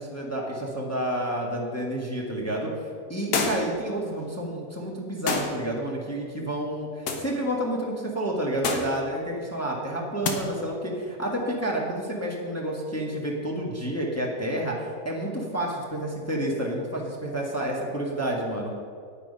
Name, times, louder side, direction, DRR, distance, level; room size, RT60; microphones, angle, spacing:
voice 1, 0.0-2.8 3.1-18.7, right 1 dB, 10° left, -2 dB, 1.5 m, -30 dB
sound 1, 3.3-3.8 5.3-5.6 7.1-7.3 8.6-9.0 10.2-10.4, left 4 dB, 70° left, 1.6 m, -27 dB
9.7 x 9.1 x 5.5 m, 2.2 s
omnidirectional pair, 1.7 m